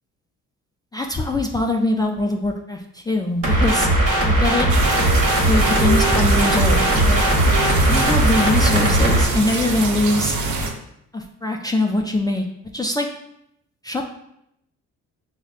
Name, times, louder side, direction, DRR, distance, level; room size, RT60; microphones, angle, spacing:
voice 1, 0.9-3.9 4.2-4.7 5.5-7.2 7.9-10.4 11.1-12.4 12.7-13.1 13.8-14.1, left 2 dB, 15° left, 1 dB, 0.3 m, -22 dB
sound 1, 3.4-9.2, right 1 dB, 50° right, 1.1 m, -18 dB
sound 2, 4.7-10.7, right 3 dB, 70° right, 0.7 m, -24 dB
6.0 x 2.1 x 2.4 m, 0.77 s
cardioid pair, 90°, 30 cm